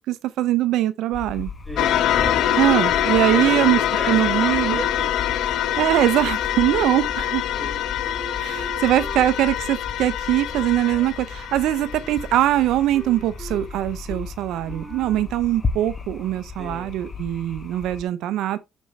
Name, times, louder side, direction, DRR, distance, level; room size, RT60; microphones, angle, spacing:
voice 1, 0.1-1.5 2.6-3.8 4.1-4.8 5.8-7.4 8.4-18.6, right 13 dB, 80° right, 0.5 m, -22 dB
sound 1, 1.1-18.0, left 4 dB, 30° left, 1.4 m, -35 dB
voice 2, 1.7-2.6 3.3-5.1 7.5-7.8 16.6-16.9, right 2 dB, ahead, 2.9 m, -34 dB
sound 2, 1.8-12.5, left 11 dB, 75° left, 0.7 m, -24 dB
Wind instrument woodwind instrument, 7.6-11.1 11.4-11.7 12.0-12.7 12.9-13.7 14.1-14.3 14.6-15.3, right 3 dB, 25° right, 3.8 m, -42 dB
6.1 x 5.4 x 3.2 m
supercardioid pair, 75°, 0 cm